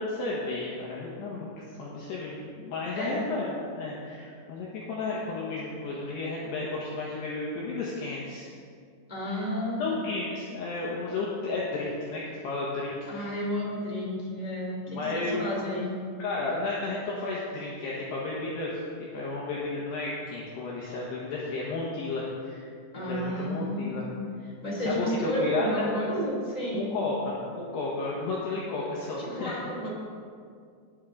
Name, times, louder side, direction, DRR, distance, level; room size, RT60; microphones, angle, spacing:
voice 1, 0.0-8.5 9.3-9.4 9.8-13.3 14.9-15.5 16.2-18.7 19.1-22.7 23.1-24.1 24.9-25.9 26.7-29.6, left 3 dB, 70° left, -5 dB, 3.0 m, -33 dB
voice 2, 2.9-3.3 9.1-10.0 13.1-15.9 22.9-24.2 24.6-26.9 29.2-29.9, equal, 10° left, -5 dB, 2.0 m, -31 dB
19.0 x 8.3 x 3.8 m, 2.2 s
omnidirectional pair, 5.7 m